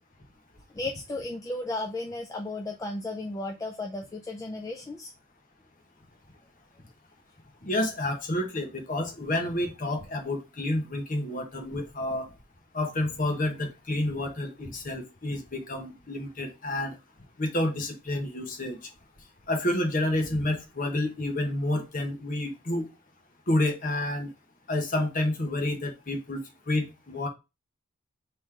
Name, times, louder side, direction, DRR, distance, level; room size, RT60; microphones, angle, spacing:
voice 1, 0.7-5.1, left 2 dB, 15° left, 0.3 m, -34 dB
voice 2, 7.6-12.3 12.7-16.9 17.4-18.8 19.5-22.9 23.5-24.3 24.7-27.3, left 1 dB, 40° left, 0.9 m, -29 dB
3.6 x 3.0 x 4.6 m
head